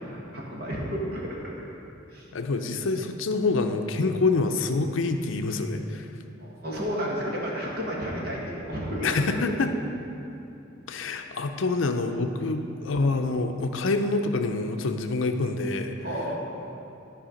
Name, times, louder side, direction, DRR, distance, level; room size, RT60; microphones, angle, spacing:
voice 1, 0.0-1.7 2.1-2.3 6.4-9.2 12.4-12.5 16.0-16.7, equal, 50° right, -4 dB, 1.7 m, -32 dB
voice 2, 2.3-6.1 9.0-9.7 10.9-15.9, left 3 dB, 75° left, 6 dB, 0.6 m, -26 dB
11.5 x 4.8 x 5.2 m, 2.8 s
head